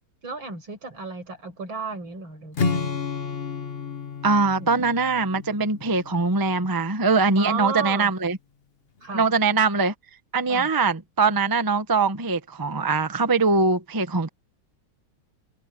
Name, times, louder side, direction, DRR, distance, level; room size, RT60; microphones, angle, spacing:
voice 1, 0.2-2.9 4.6-4.7 7.4-8.1 9.0-9.3 10.5-10.7, right 4 dB, 75° right, 6.4 m, -33 dB
Strum, 2.5-6.7, left 5 dB, 35° left, 1.2 m, -31 dB
voice 2, 4.2-8.4 9.1-9.9 10.3-14.3, right 4 dB, 15° right, 0.7 m, -22 dB
omnidirectional pair, 2.2 m